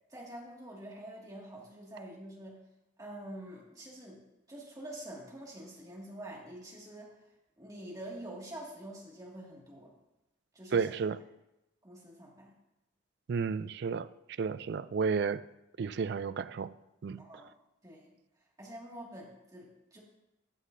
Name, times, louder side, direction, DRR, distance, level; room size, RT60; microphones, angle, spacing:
voice 1, 0.1-2.6 3.0-4.2 4.5-7.2 7.6-9.9 10.5-10.9 11.8-12.6 17.2-17.5 17.8-18.1 18.6-20.0, right 1 dB, 20° right, -3 dB, 2.0 m, -46 dB
voice 2, 10.7-11.2 13.3-15.4 15.8-16.7 17.0-17.2, right 5 dB, 60° right, 16 dB, 0.3 m, -32 dB
14.5 x 7.3 x 2.7 m, 0.90 s
head